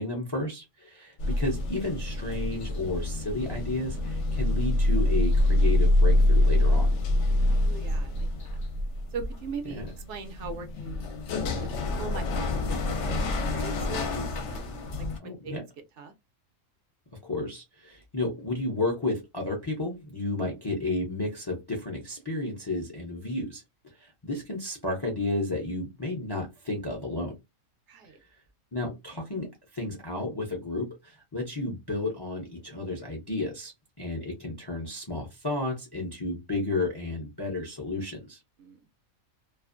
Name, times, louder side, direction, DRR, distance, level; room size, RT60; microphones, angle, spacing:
voice 1, 0.0-6.9 9.7-9.9 15.2-15.6 17.2-23.6 24.0-27.3 28.7-29.5 29.7-33.7 34.0-38.4, left 2 dB, 30° left, 0.4 m, -32 dB
sound 1, 1.2-15.2, left 1 dB, 65° left, 0.9 m, -26 dB
voice 2, 7.6-8.5 9.1-11.0 11.3-11.7 12.0-12.4 12.7-14.6 15.2-15.6 16.0-16.1 27.9-28.2 38.6-38.8, right 5 dB, 70° right, 0.8 m, -40 dB
2.5 x 2.4 x 2.4 m
omnidirectional pair, 1.4 m